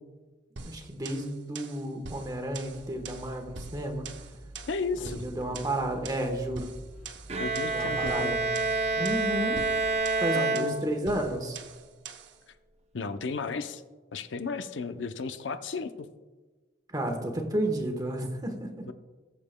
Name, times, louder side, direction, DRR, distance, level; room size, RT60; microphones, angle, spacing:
voice 1, 0.6-4.0 5.0-6.7 7.7-8.4 8.9-9.7 10.2-11.6 16.9-18.7, right 1 dB, 20° right, 4 dB, 1.1 m, -32 dB
sound 1, 0.6-12.4, right 4 dB, 70° right, 0.8 m, -44 dB
sound 2, 2.5-10.0, equal, 45° left, 3.1 m, -48 dB
voice 2, 4.7-5.2 7.4-8.4 10.3-10.8 12.9-13.8 14.1-15.9 18.9-19.0, left 4 dB, 80° left, 10 dB, 0.6 m, -33 dB
Bowed string instrument, 7.3-11.3, right 3 dB, 35° right, 0.7 m, -28 dB
19.0 x 7.3 x 2.2 m, 1.3 s
head